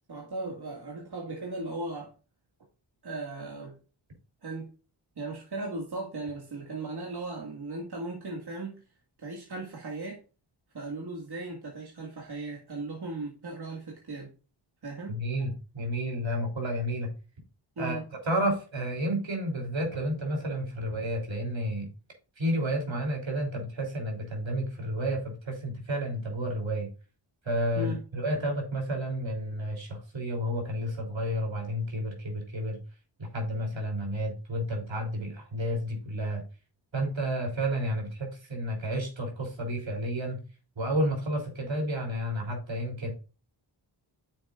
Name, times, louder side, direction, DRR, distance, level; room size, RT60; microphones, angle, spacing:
voice 1, 0.1-2.1 3.0-3.8 4.4-4.7 5.2-8.8 9.2-10.2 10.7-14.3 14.8-15.2 17.8-18.0 27.8-28.0, right 2 dB, 50° right, 0 dB, 2.0 m, -37 dB
voice 2, 15.1-17.1 17.8-18.0 18.2-21.9 22.4-26.9 27.4-32.8 33.2-36.4 36.9-40.4 40.8-43.1, equal, 65° right, 2 dB, 3.4 m, -31 dB
9.6 x 6.9 x 2.4 m, 0.33 s
cardioid pair, 60°, 48 cm